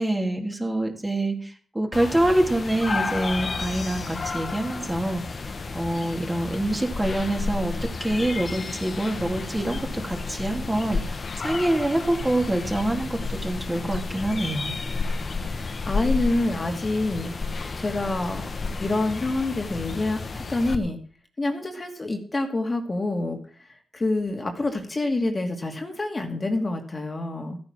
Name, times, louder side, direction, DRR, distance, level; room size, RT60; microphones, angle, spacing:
voice 1, 0.0-5.2 5.7-7.7 8.0-14.7, right 1 dB, 15° right, 2 dB, 3.1 m, -26 dB
sound 1, 1.9-20.8, left 4 dB, 45° left, 1.6 m, -31 dB
voice 2, 15.4-17.3 17.8-18.5 18.8-21.0 21.4-23.7 23.9-27.6, left 2 dB, 30° left, 4 dB, 2.4 m, -27 dB
14.0 x 9.7 x 6.1 m, 0.43 s
cardioid pair, 75°, 0 cm